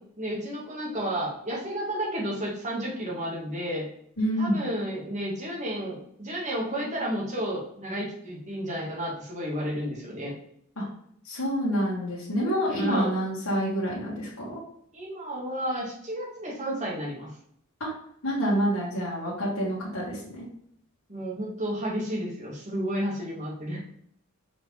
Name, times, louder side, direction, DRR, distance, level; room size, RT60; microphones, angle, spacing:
voice 1, 0.2-3.9 4.4-10.3 12.7-13.1 14.9-17.3 21.1-23.8, equal, 35° right, -3 dB, 2.0 m, -32 dB
voice 2, 4.2-4.6 10.8-10.9 11.3-14.6 17.8-17.9 18.2-20.5, equal, 80° left, -7 dB, 1.8 m, -27 dB
5.6 x 4.8 x 3.4 m, 0.68 s
head